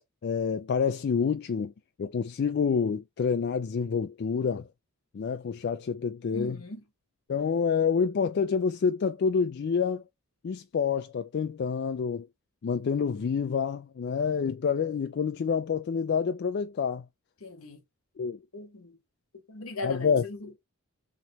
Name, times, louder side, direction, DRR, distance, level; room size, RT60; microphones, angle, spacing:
voice 1, 0.2-1.7 2.0-4.7 5.1-6.6 7.3-10.0 10.4-12.3 12.6-17.0 18.2-18.4 19.8-20.2, left 6 dB, 50° left, 0.3 m, -28 dB
voice 2, 6.3-6.8 17.4-17.8 18.5-19.0 19.3-20.6, left 2 dB, 75° left, 1.1 m, -39 dB
3.1 x 3.0 x 3.9 m
head